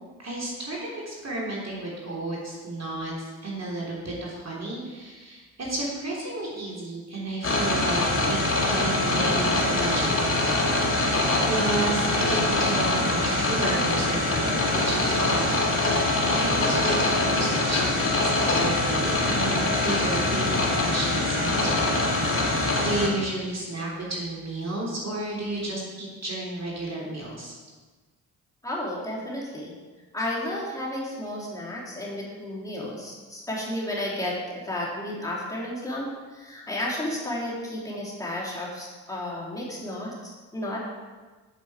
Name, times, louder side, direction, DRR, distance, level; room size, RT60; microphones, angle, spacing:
voice 1, 0.2-11.2 11.5-15.7 16.4-27.5, right 2 dB, 35° right, -4 dB, 3.2 m, -32 dB
sound 1, 7.4-23.1, left 2 dB, 30° left, 2.1 m, -24 dB
voice 2, 28.6-29.7 30.1-40.8, left 1 dB, 10° left, -6 dB, 3.0 m, -32 dB
7.5 x 7.5 x 4.8 m, 1.3 s
hypercardioid pair, 50°, 43 cm